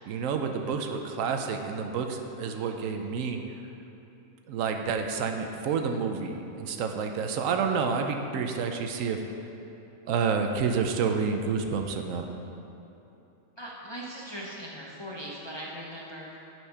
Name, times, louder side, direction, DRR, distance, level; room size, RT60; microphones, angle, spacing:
voice 1, 0.1-3.4 4.5-9.2 10.1-12.3, right 5 dB, 85° right, 5 dB, 1.0 m, -29 dB
voice 2, 13.6-16.4, equal, 25° left, -5 dB, 0.6 m, -40 dB
8.0 x 4.5 x 5.6 m, 2.9 s
omnidirectional pair, 1.4 m